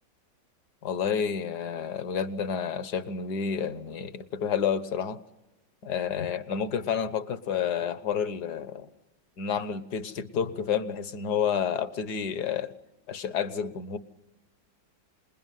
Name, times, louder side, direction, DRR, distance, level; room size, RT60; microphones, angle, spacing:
voice 1, 0.8-5.2 5.8-8.9 9.4-12.7 13.1-14.0, left 7 dB, 65° left, 1.7 m, -30 dB
27.5 x 21.0 x 9.3 m
omnidirectional pair, 2.0 m